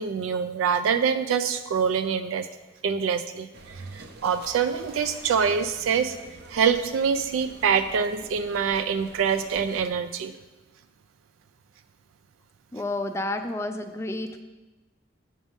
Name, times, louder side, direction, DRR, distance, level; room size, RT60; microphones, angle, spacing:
voice 1, 0.0-2.5 2.8-6.2 6.5-10.3, right 6 dB, 75° right, 9 dB, 0.3 m, -25 dB
sound 1, 3.5-9.9, right 2 dB, 50° right, 0.7 m, -46 dB
voice 2, 12.7-14.4, left 2 dB, 15° left, 7 dB, 0.3 m, -30 dB
8.1 x 3.7 x 6.1 m, 1.2 s
head